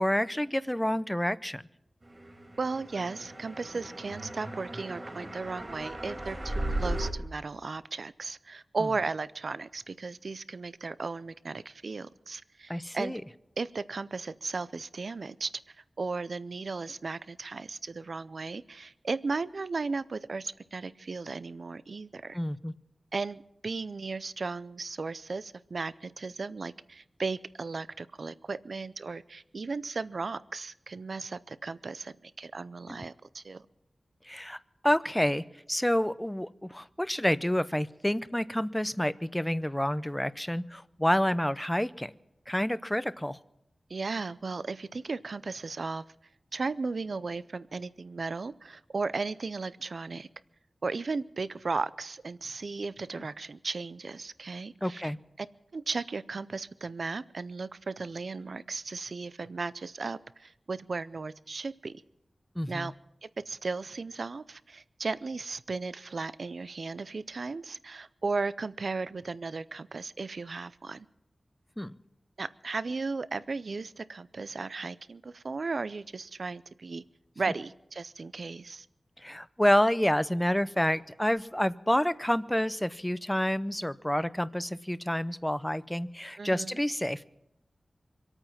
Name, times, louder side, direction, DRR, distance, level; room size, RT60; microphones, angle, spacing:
voice 1, 0.0-1.6 12.7-13.2 22.3-22.7 34.3-34.6 34.8-42.1 42.5-43.4 53.1-53.2 54.8-55.2 62.6-62.9 71.8-72.0 79.2-87.3, equal, 5° left, 15 dB, 0.5 m, -28 dB
sound 1, 2.6-7.1, right 1 dB, 30° right, 3.1 m, -36 dB
voice 2, 2.6-13.1 13.6-15.5 16.0-22.4 23.1-33.7 43.9-46.0 46.5-50.3 50.8-55.0 55.4-55.5 55.7-61.9 62.7-62.9 63.2-71.1 72.4-77.0 77.4-78.9 86.4-86.8, right 4 dB, 65° right, 16 dB, 0.5 m, -35 dB
25.0 x 8.9 x 5.8 m, 0.84 s
wide cardioid pair, 95°, 0 cm